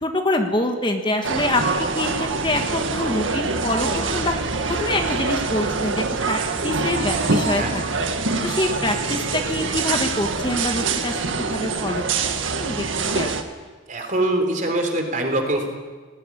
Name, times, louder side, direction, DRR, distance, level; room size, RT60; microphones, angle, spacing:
voice 1, 0.0-4.3 4.7-6.4 6.6-7.8 8.4-12.0 12.6-13.3, left 1 dB, 25° left, 4 dB, 1.6 m, -25 dB
sound 1, 1.2-13.4, right 4 dB, 85° right, 1.9 m, -25 dB
voice 2, 7.5-8.0 13.9-15.7, right 1 dB, 40° right, 4 dB, 3.7 m, -24 dB
19.0 x 17.5 x 9.9 m, 1.4 s
head